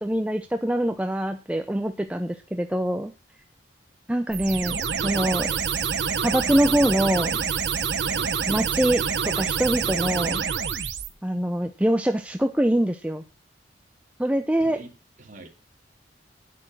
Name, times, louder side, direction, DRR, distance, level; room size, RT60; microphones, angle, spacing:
voice 1, 0.0-3.1 4.1-5.6 6.2-7.4 8.5-10.4 11.2-13.2 14.2-14.8, right 1 dB, 5° right, 7 dB, 0.6 m, -24 dB
sound 1, 4.3-11.1, right 6 dB, 85° right, 1.1 m, -26 dB
voice 2, 14.6-14.9 15.2-15.5, right 1 dB, 45° right, 4 dB, 2.3 m, -44 dB
9.0 x 8.4 x 6.2 m, 0.32 s
head